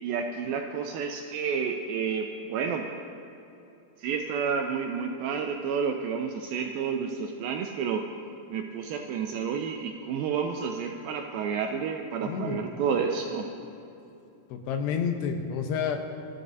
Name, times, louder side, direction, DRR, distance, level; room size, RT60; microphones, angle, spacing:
voice 1, 0.0-3.0 4.0-8.0 8.5-13.5, right 6 dB, 85° right, 3 dB, 2.1 m, -30 dB
voice 2, 12.2-12.6 14.5-16.0, left 7 dB, 85° left, 5 dB, 3.1 m, -29 dB
23.5 x 12.5 x 2.7 m, 2.9 s
omnidirectional pair, 4.7 m